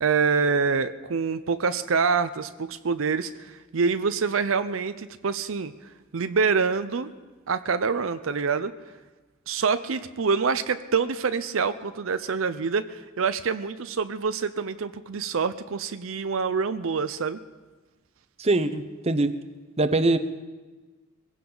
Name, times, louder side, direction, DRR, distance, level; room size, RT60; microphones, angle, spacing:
voice 1, 0.0-5.7 6.1-7.1 7.5-8.7 9.5-17.4, right 5 dB, 75° right, 11 dB, 0.6 m, -26 dB
voice 2, 18.4-19.3 19.8-20.2, right 2 dB, 30° right, 10 dB, 0.8 m, -22 dB
22.0 x 16.0 x 3.9 m, 1.3 s
head